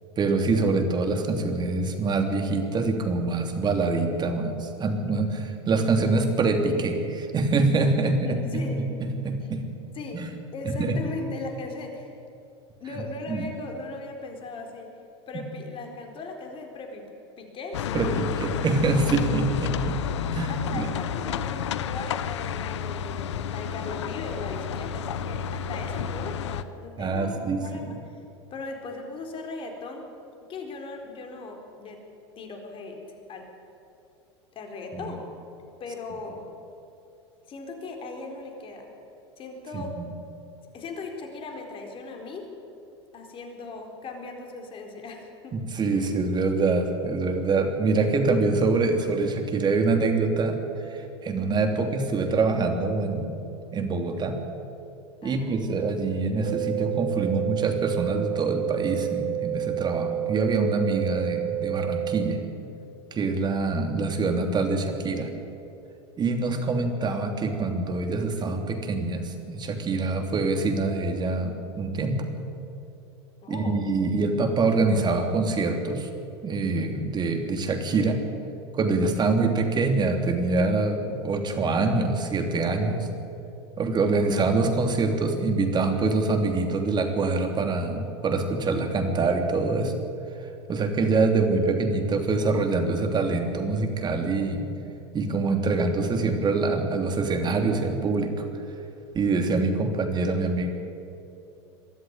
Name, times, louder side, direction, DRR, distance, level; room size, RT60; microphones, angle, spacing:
voice 1, 0.2-9.6 10.1-10.3 10.8-11.0 13.3-13.4 17.9-20.0 20.3-20.9 27.0-27.9 34.9-35.0 39.7-40.1 45.5-50.6 50.9-53.3 53.7-54.4 55.2-62.4 63.1-65.3 66.2-72.3 73.5-76.1 76.4-78.2 78.7-83.1 83.8-89.9 90.7-94.7 95.1-98.4 99.1-100.7, right 3 dB, 30° right, 5 dB, 3.1 m, -25 dB
voice 2, 8.0-8.8 9.9-10.2 10.5-12.1 12.8-14.9 15.3-17.0 17.4-19.0 20.5-28.0 28.5-30.0 30.5-32.0 32.4-33.0 33.3-33.5 34.5-35.2 35.8-36.4 37.5-38.9 39.4-39.9 40.7-42.5 43.1-45.6 45.9-46.0 51.6-51.9 55.2-55.6 66.6-66.8 73.4-73.8, left 3 dB, 40° left, 3 dB, 4.3 m, -38 dB
sound 1, 17.7-26.6, left 8 dB, 80° left, 0.9 m, -30 dB
sound 2, 56.5-62.5, right 12 dB, 55° right, 0.8 m, -29 dB
23.0 x 13.0 x 9.0 m, 2.9 s
hypercardioid pair, 95°, 15 cm